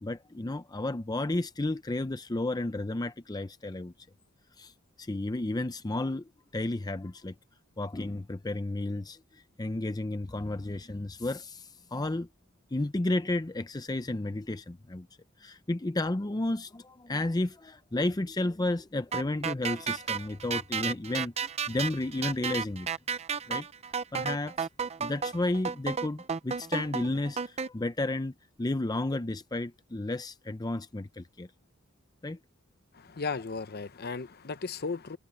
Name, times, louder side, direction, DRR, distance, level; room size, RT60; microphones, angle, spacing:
voice 1, 0.0-3.9 4.6-4.7 5.0-7.3 7.8-12.3 12.7-15.1 15.4-22.9 23.5-23.7 24.1-24.7 25.0-31.5 32.2-32.4, left 2 dB, 20° left, 0.6 m, -32 dB
sound 1, 19.1-27.7, right 6 dB, 30° right, 0.6 m, -33 dB
voice 2, 32.9-35.2, left 4 dB, 50° left, 0.8 m, -35 dB
head